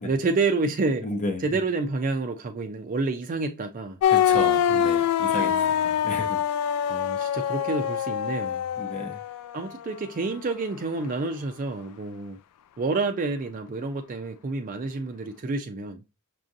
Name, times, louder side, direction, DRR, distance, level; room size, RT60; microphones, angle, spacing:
voice 1, 0.0-1.1 1.4-4.0 4.7-5.0 5.4-5.8 6.9-8.7 9.5-12.4 12.8-16.0, right 3 dB, 40° right, 0.4 m, -29 dB
voice 2, 1.0-1.4 4.1-5.5 5.8-6.4 8.8-9.2, left 1 dB, 35° left, 0.8 m, -32 dB
sound 1, 4.0-9.7, left 9 dB, 90° left, 0.3 m, -24 dB
6.0 x 2.5 x 2.5 m
head